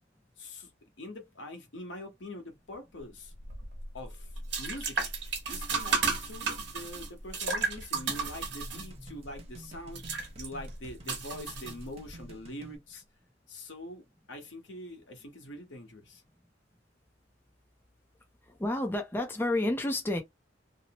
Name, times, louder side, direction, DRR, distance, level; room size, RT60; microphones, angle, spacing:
voice 1, 0.4-0.7 1.0-3.3 3.9-4.3 4.6-13.0 13.5-16.2, left 1 dB, 75° left, 1.0 m, -44 dB
sound 1, 3.3-12.2, right 4 dB, 70° right, 1.0 m, -34 dB
sound 2, 7.6-12.8, right 1 dB, 35° right, 0.7 m, -51 dB
voice 2, 18.4-20.2, left 1 dB, 10° left, 0.4 m, -30 dB
2.8 x 2.0 x 2.8 m
head